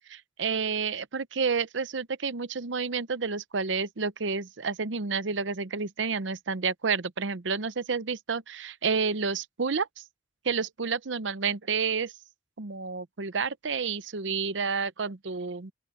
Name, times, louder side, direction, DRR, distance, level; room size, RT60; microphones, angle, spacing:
voice 1, 0.1-9.9 10.4-12.1 12.6-15.7, right 5 dB, 75° right, 0.8 m, -30 dB
open air
head